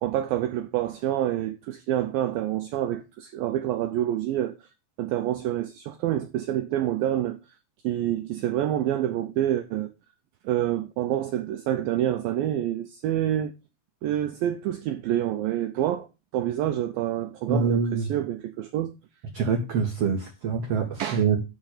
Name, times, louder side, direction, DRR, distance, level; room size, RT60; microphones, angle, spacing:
voice 1, 0.0-4.7 5.0-7.5 7.8-9.9 10.4-13.5 14.0-16.1 16.3-18.9 21.0-21.2, right 12 dB, 85° right, 2.0 m, -27 dB
voice 2, 17.4-18.1 19.3-21.4, right 5 dB, 55° right, 1.8 m, -25 dB
12.5 x 4.3 x 6.6 m
omnidirectional pair, 5.1 m